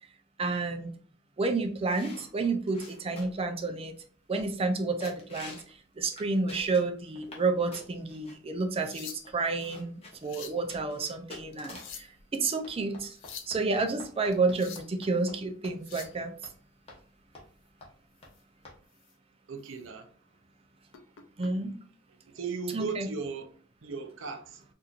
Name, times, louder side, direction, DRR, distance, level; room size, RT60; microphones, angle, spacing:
voice 1, 0.4-0.9 1.4-3.9 4.3-5.6 6.0-12.1 12.3-13.2 13.5-16.3 21.4-21.7 22.7-23.1, right 3 dB, 30° right, 0.5 m, -30 dB
sound 1, 1.9-3.5 4.0-4.1 4.4-4.7 5.0-5.7 6.1-7.5 7.7-8.4 8.9-9.0 9.2-12.0 12.6-15.4 15.6-15.8 16.0-16.1 16.4-16.5 16.9-17.0 17.3-17.5 17.8-17.9 18.2-18.3 18.6-18.8, left 2 dB, 30° left, 1.0 m, -48 dB
sound 2, 8.6-9.5 10.0-10.6 11.5-12.3 13.0-13.6 14.3-15.0 15.7-16.2 18.2-18.4 18.9-19.1 19.6-19.7 20.9-21.5 22.6-22.8, left 7 dB, 85° left, 0.5 m, -46 dB
voice 2, 19.5-20.1 22.3-23.5 23.8-24.6, right 5 dB, 85° right, 0.6 m, -37 dB
4.3 x 2.6 x 2.5 m
head